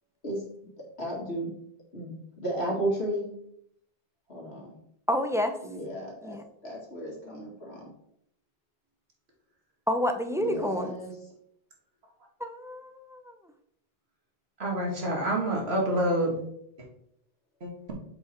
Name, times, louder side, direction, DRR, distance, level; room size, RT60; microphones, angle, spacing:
voice 1, 1.0-1.5 1.9-3.3 4.3-4.8 5.6-7.9 10.4-11.1, right 1 dB, 85° left, -2 dB, 2.6 m, -34 dB
voice 2, 5.1-5.6 6.2-6.4 9.9-10.9 12.4-13.3, left 1 dB, 5° right, 6 dB, 0.5 m, -29 dB
voice 3, 14.6-16.4 17.6-17.9, right 1 dB, 80° right, 0 dB, 2.1 m, -27 dB
7.8 x 4.8 x 4.4 m, 0.71 s
omnidirectional pair, 1.0 m